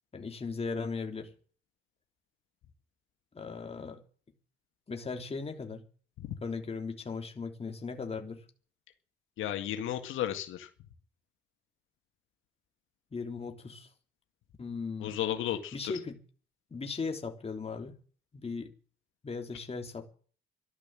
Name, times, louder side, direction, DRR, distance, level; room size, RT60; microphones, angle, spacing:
voice 1, 0.1-1.3 3.3-4.0 4.9-5.8 6.4-8.4 13.1-13.9 14.6-15.2 15.7-16.2 16.7-18.0 18.3-18.7 19.2-20.1, left 4 dB, 30° left, 3 dB, 3.4 m, -37 dB
voice 2, 9.4-10.7 15.0-15.9, left 11 dB, 85° left, 6 dB, 1.9 m, -33 dB
13.5 x 12.0 x 7.6 m, 0.40 s
cardioid pair, 90°, 20 cm